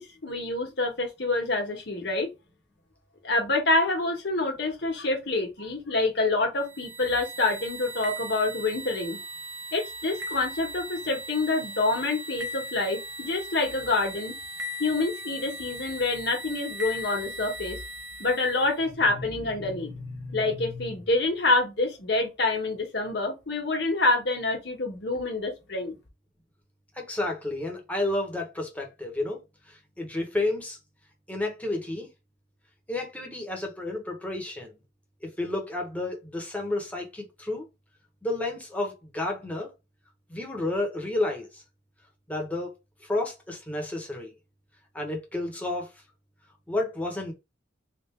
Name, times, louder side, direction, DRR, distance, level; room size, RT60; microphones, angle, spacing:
voice 1, 0.0-2.3 3.2-9.2 9.7-14.3 14.8-17.8 18.2-26.0, left 2 dB, 65° left, 1.2 m, -27 dB
sound 1, 6.6-18.8, equal, 75° right, 0.9 m, -38 dB
voice 2, 27.0-29.4 29.7-30.8 31.3-32.1 32.9-34.8 35.2-37.7 38.2-39.7 40.3-41.6 42.3-42.7 43.0-44.3 44.9-45.9 46.7-47.3, left 2 dB, 10° left, 1.0 m, -31 dB
3.4 x 2.6 x 3.2 m
head